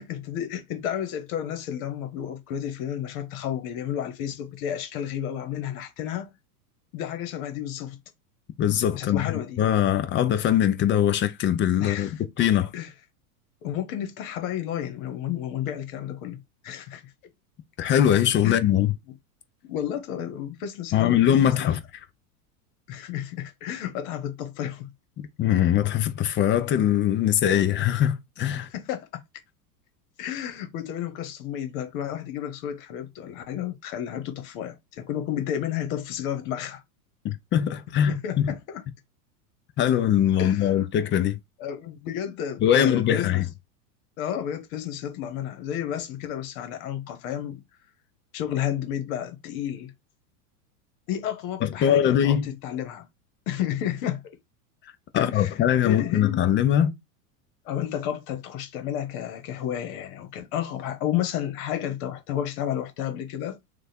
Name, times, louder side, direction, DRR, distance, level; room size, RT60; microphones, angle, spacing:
voice 1, 0.0-6.3 6.9-8.0 8.9-9.6 11.8-12.1 12.7-12.9 13.6-17.0 18.4-18.6 19.6-21.7 22.9-24.9 28.7-29.1 30.2-36.8 38.1-38.8 40.4-40.9 41.6-43.4 44.2-47.6 48.3-49.9 51.1-53.1 53.5-54.2 55.1-55.5 55.8-56.4 57.6-63.6, left 10 dB, 60° left, 1.3 m, -31 dB
voice 2, 8.6-12.1 12.4-12.7 17.8-18.9 20.9-21.8 25.2-28.7 37.2-38.5 39.8-41.4 42.6-43.4 51.6-52.5 55.1-56.9, left 10 dB, 25° left, 0.5 m, -22 dB
3.2 x 2.5 x 4.2 m
hypercardioid pair, 115°, 46 cm